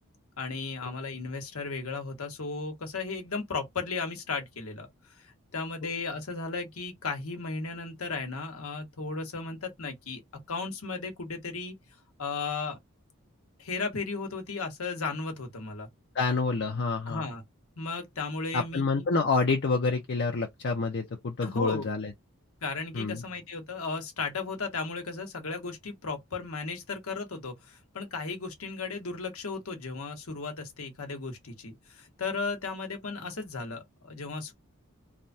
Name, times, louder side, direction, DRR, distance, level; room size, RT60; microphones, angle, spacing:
voice 1, 0.4-4.9 5.2-5.3 5.5-10.2 10.5-11.7 12.2-12.8 13.6-15.9 17.1-17.4 17.8-19.1 21.4-21.9 22.6-34.5, left 4 dB, 80° left, 1.1 m, -35 dB
voice 2, 16.1-17.2 18.5-22.1 22.9-23.2, left 4 dB, 50° left, 0.5 m, -28 dB
3.2 x 2.2 x 2.6 m
head